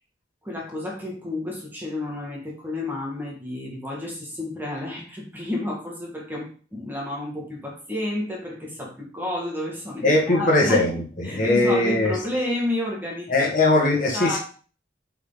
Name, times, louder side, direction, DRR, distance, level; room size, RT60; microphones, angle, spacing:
voice 1, 0.4-13.5 14.1-14.4, left 1 dB, 10° right, -2 dB, 2.0 m, -31 dB
voice 2, 10.0-12.2 13.3-14.4, left 2 dB, 45° left, -1 dB, 1.9 m, -20 dB
7.9 x 5.0 x 4.0 m, 0.39 s
head